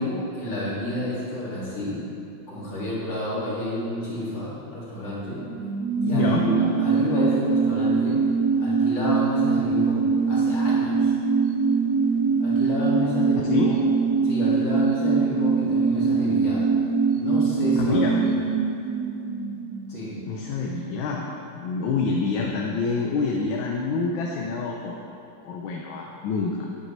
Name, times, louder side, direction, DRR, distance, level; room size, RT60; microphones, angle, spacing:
voice 1, 0.0-2.0 2.5-5.4 6.0-8.2 8.6-11.1 12.4-13.8 14.2-16.7 17.2-18.0 19.9-20.1, left 1 dB, 65° left, -8 dB, 3.1 m, -30 dB
sound 1, 5.4-20.5 20.8-20.9, right 5 dB, 75° right, 0.9 m, -23 dB
voice 2, 6.1-6.5 13.5-13.7 17.8-18.2 20.2-21.2 21.5-25.0 25.4-26.7, left 4 dB, 80° left, -1 dB, 1.5 m, -27 dB
9.3 x 9.2 x 3.2 m, 2.7 s
omnidirectional pair, 2.2 m